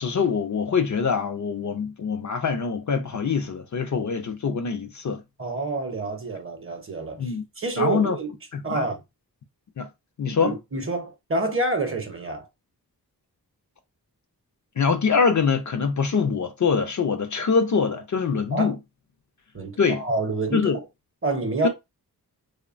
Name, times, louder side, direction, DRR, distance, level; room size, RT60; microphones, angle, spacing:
voice 1, 0.0-5.2 7.2-7.4 7.8-8.2 8.5-8.8 9.8-9.9 10.2-10.5 14.8-18.8 19.8-20.0 20.5-20.8 21.6-21.7, left 5 dB, 50° left, 0.5 m, -24 dB
voice 2, 5.4-8.3 8.6-9.0 10.4-12.5 18.5-18.8 19.5-20.8 21.2-21.7, right 2 dB, 35° right, 0.7 m, -28 dB
3.0 x 2.1 x 2.4 m
wide cardioid pair, 80°, 39 cm